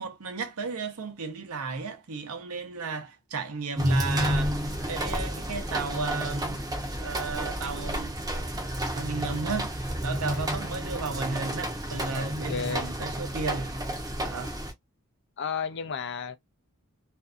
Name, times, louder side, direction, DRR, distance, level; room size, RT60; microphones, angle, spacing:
voice 1, 0.0-4.6 4.9-6.6 7.0-8.1 8.9-9.7 10.0-13.8 14.2-14.5, right 4 dB, 90° right, 0.7 m, -34 dB
sound 1, 3.8-14.7, equal, 15° right, 0.6 m, -31 dB
voice 2, 12.1-12.9 15.4-16.4, left 6 dB, 55° left, 0.5 m, -33 dB
2.6 x 2.3 x 2.4 m
head